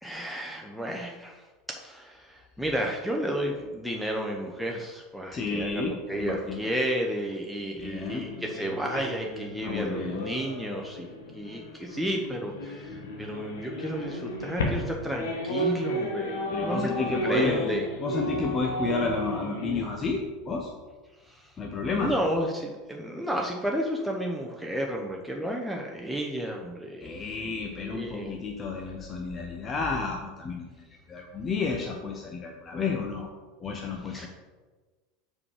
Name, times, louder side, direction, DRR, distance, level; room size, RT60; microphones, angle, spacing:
voice 1, 0.0-17.9 21.2-21.5 21.9-27.5 27.9-28.3 34.0-34.3, equal, ahead, -1 dB, 0.9 m, -32 dB
voice 2, 5.3-6.7 7.8-8.3 9.6-10.2 16.5-20.7 21.6-22.1 27.0-30.6 31.1-33.3 33.6-34.3, left 4 dB, 25° left, 1 dB, 0.9 m, -31 dB
sound 1, 8.2-19.9, equal, 70° left, 1.4 m, -33 dB
7.4 x 4.8 x 4.8 m, 1.3 s
figure-of-eight pair, 80°, 0 cm